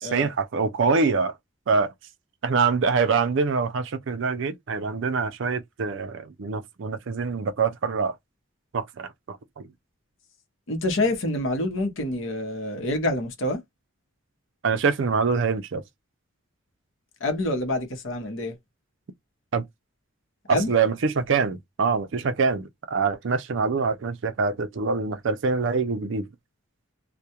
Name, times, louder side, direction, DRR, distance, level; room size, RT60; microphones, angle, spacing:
voice 1, 0.0-1.3 1.7-1.9 2.4-8.1 8.7-9.7 14.6-15.8 19.5-19.6 20.5-26.3, right 5 dB, 55° right, 0.4 m, -25 dB
voice 2, 10.7-13.6 17.2-18.6 20.5-20.7, left 1 dB, 60° left, 0.8 m, -27 dB
2.3 x 2.1 x 2.7 m
head